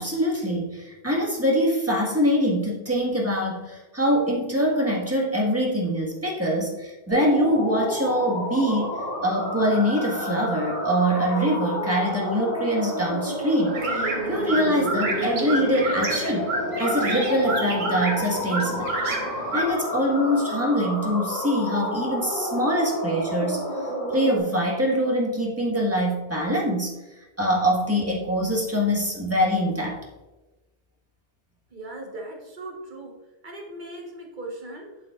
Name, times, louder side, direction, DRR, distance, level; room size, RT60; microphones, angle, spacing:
voice 1, 0.0-9.0 9.2-16.5 16.8-18.9 19.5-23.7 24.1-27.0 27.4-30.0, equal, 15° right, -2 dB, 1.5 m, -24 dB
sound 1, 7.1-24.4, left 1 dB, 65° left, 3.1 m, -30 dB
sound 2, 13.7-19.7, right 2 dB, 80° right, 1.4 m, -29 dB
voice 2, 31.7-35.0, right 1 dB, 50° right, 1 dB, 1.4 m, -39 dB
8.7 x 7.4 x 2.4 m, 1.1 s
omnidirectional pair, 1.0 m